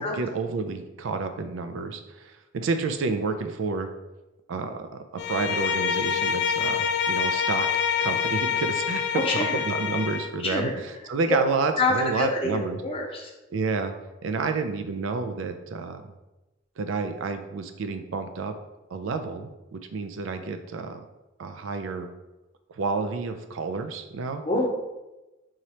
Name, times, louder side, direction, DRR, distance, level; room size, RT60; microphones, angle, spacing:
voice 1, 0.0-3.9 4.5-7.7 8.0-12.8 13.5-13.9 14.2-16.1 16.8-18.5 18.9-21.0 21.4-22.1 22.7-24.4, right 4 dB, 75° right, 8 dB, 0.4 m, -30 dB
Bowed string instrument, 5.2-10.4, left 7 dB, 60° left, 0.3 m, -26 dB
voice 2, 9.1-9.6 10.4-10.7 11.3-11.4 11.8-13.2 24.4-24.7, left 2 dB, 30° left, -1 dB, 0.7 m, -26 dB
4.7 x 2.9 x 2.8 m, 1.0 s
head